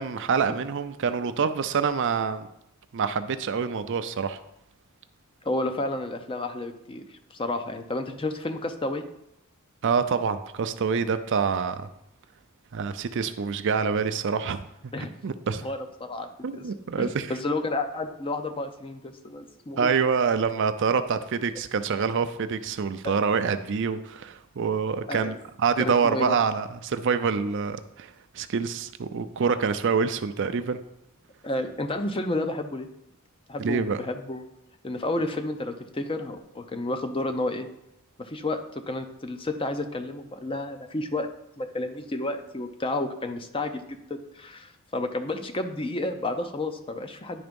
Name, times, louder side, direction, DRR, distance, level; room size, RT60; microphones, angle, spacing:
voice 1, 0.0-2.5 2.9-4.4 9.8-11.9 12.7-14.6 14.8-15.7 16.4-17.3 19.8-30.8 33.6-34.0, right 5 dB, 55° right, 10 dB, 0.4 m, -26 dB
voice 2, 5.4-7.0 7.3-9.0 14.9-15.1 15.6-16.7 17.0-19.9 23.0-23.2 25.1-25.4 25.8-26.3 31.4-32.9 33.5-34.5 34.8-37.7 38.2-41.3 41.6-47.4, left 2 dB, 25° left, 7 dB, 0.6 m, -31 dB
10.0 x 3.5 x 5.2 m, 0.81 s
head